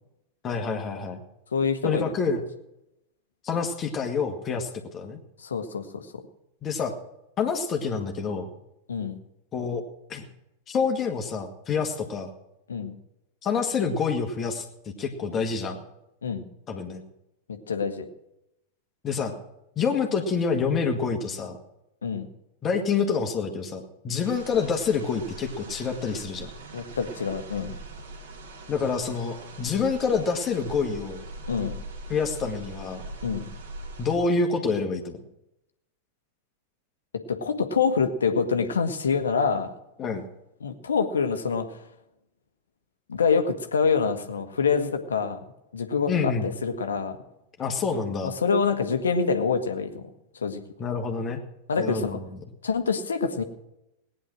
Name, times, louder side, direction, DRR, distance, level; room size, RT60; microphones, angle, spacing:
voice 1, 0.4-1.2 1.8-2.4 3.4-5.2 6.6-6.9 7.4-8.5 9.5-9.8 10.1-10.2 10.7-12.3 13.4-14.6 15.0-15.8 16.7-17.0 19.0-19.3 19.8-21.6 22.6-26.5 28.7-31.3 32.1-33.0 34.0-35.2 40.0-40.2 46.1-46.5 47.6-48.3 50.8-51.4 51.8-52.3, left 5 dB, 25° left, 3 dB, 1.9 m, -27 dB
voice 2, 1.5-2.1 5.4-6.1 8.9-9.2 12.7-12.9 16.2-16.4 17.5-18.0 22.0-22.3 26.7-27.7 31.5-31.7 33.2-33.5 37.1-39.7 40.6-41.8 43.1-45.4 45.7-47.2 48.2-50.0 50.4-50.6 51.7-52.2 52.6-53.4, left 5 dB, 70° left, 8 dB, 1.5 m, -26 dB
sound 1, 24.2-34.2, right 2 dB, 60° right, 3.1 m, -41 dB
18.5 x 10.5 x 6.2 m, 0.86 s
figure-of-eight pair, 90°, 0 cm